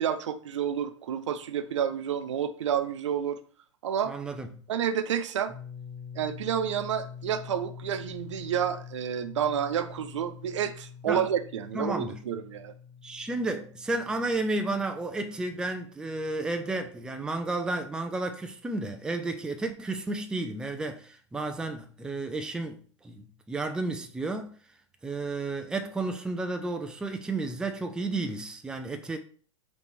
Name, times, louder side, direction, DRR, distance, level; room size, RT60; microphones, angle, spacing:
voice 1, 0.0-3.4 3.8-4.1 4.7-5.5 6.2-12.7, right 9 dB, 70° right, 0.5 m, -30 dB
voice 2, 4.1-4.6 11.1-11.3 11.7-12.2 13.0-22.8 23.0-24.6 25.0-29.2, right 2 dB, 5° right, 0.4 m, -32 dB
sound 1, 5.5-17.2, left 7 dB, 20° right, 1.1 m, -46 dB
4.0 x 3.4 x 3.1 m
hypercardioid pair, 105°, 16 cm